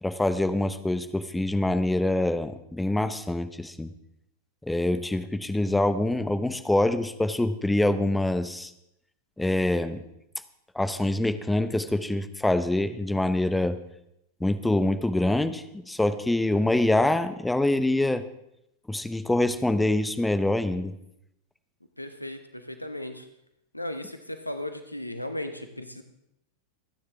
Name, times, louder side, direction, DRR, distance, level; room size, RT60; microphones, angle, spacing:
voice 1, 0.0-3.9 4.6-8.7 9.4-10.0 10.7-13.8 14.4-18.2 18.9-20.9, left 1 dB, 5° left, 11 dB, 0.8 m, -25 dB
voice 2, 22.0-23.3 23.7-26.0, left 1 dB, 85° left, 9 dB, 1.1 m, -36 dB
26.0 x 9.6 x 3.5 m, 0.80 s
figure-of-eight pair, 90°, 0 cm